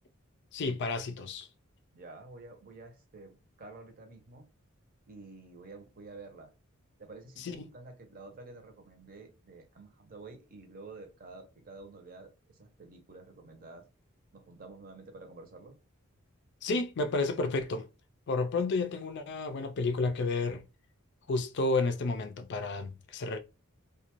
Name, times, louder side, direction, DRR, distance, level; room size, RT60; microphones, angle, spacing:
voice 1, 0.5-1.5 7.4-7.7 16.6-17.9 18.3-20.6 21.3-23.4, left 3 dB, 55° left, 0.4 m, -31 dB
voice 2, 1.9-4.5 5.1-6.5 7.0-13.8 14.3-15.8, right 3 dB, 45° right, 0.7 m, -50 dB
2.5 x 2.2 x 2.9 m
head